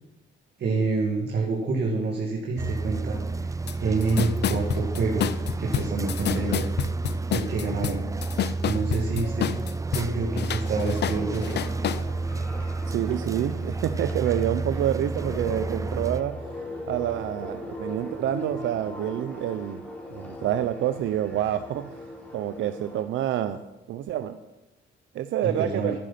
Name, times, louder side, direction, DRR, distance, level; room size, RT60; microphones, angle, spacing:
voice 1, 0.6-3.5 3.8-5.3 5.6-6.7 7.3-8.0 8.6-9.5 9.9-11.6 25.4-25.9, right 3 dB, 60° right, -1 dB, 2.4 m, -27 dB
sound 1, 2.6-16.2, right 3 dB, 15° right, 0.4 m, -30 dB
sound 2, 3.7-3.8 4.0-10.1 10.4-12.0, left 10 dB, 60° left, 0.6 m, -29 dB
sound 3, 11.0-23.0, left 1 dB, 5° left, 3.5 m, -40 dB
voice 2, 12.9-16.4 16.9-19.8 20.1-21.9 22.3-23.6 23.9-24.4 25.1-25.9, right 11 dB, 75° right, 10 dB, 0.7 m, -27 dB
11.0 x 10.0 x 5.8 m, 1.0 s
cardioid pair, 90°, 20 cm